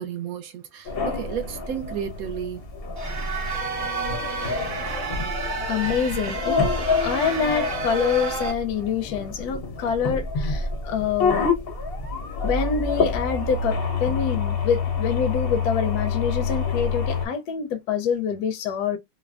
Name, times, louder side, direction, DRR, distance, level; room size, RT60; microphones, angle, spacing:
voice 1, 0.0-2.6, right 8 dB, 65° right, 0.9 m, -32 dB
sound 1, 0.9-17.3, left 4 dB, 55° left, 0.6 m, -27 dB
sound 2, 3.0-8.5, right 4 dB, 50° right, 1.2 m, -31 dB
voice 2, 5.7-11.5 12.4-19.0, left 7 dB, 70° left, 1.0 m, -26 dB
3.3 x 2.1 x 2.3 m
omnidirectional pair, 1.9 m